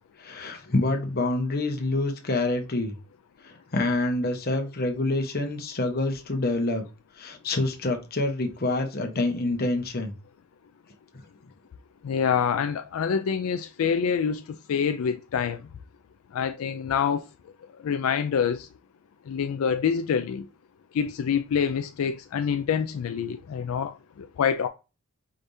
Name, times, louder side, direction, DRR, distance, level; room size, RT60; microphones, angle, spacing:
voice 1, 0.2-2.9 3.4-6.8 7.2-10.1 11.1-11.2, left 2 dB, 45° left, 1.0 m, -27 dB
voice 2, 12.0-14.4 14.7-15.6 16.3-17.2 17.8-18.7 19.3-20.5 20.9-24.7, left 7 dB, 80° left, 0.4 m, -26 dB
5.1 x 3.3 x 2.7 m
head